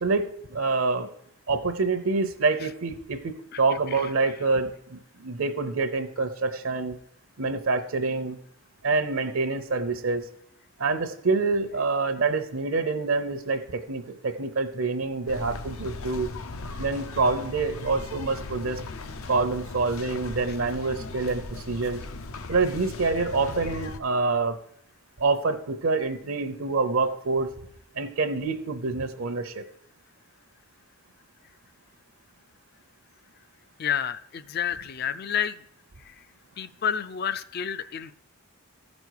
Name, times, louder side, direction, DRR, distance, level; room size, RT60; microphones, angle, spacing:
voice 1, 0.0-1.1 1.5-7.0 7.4-8.4 8.8-10.3 10.8-16.3 16.8-18.8 19.3-22.0 22.5-24.6 25.2-27.5 27.9-29.6, right 3 dB, 70° right, 8 dB, 0.7 m, -26 dB
sound 1, 15.3-24.0, left 3 dB, 75° left, 0.7 m, -38 dB
voice 2, 33.8-35.6 36.6-38.1, left 8 dB, 45° left, 16 dB, 0.4 m, -29 dB
14.5 x 5.3 x 4.7 m, 0.73 s
head